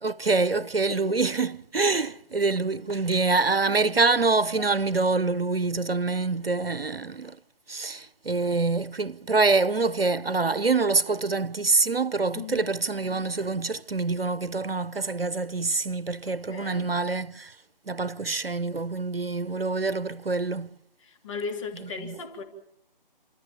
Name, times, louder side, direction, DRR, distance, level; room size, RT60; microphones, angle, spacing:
voice 1, 0.0-7.4 7.7-17.6 17.9-20.7 21.8-22.2, right 3 dB, 85° right, 0.9 m, -26 dB
voice 2, 0.9-1.2 3.5-4.2 4.6-4.7 12.3-12.7 16.3-16.9 21.0-22.4, left 4 dB, 35° left, 3.3 m, -37 dB
29.0 x 13.5 x 8.8 m
figure-of-eight pair, 145°, 29 cm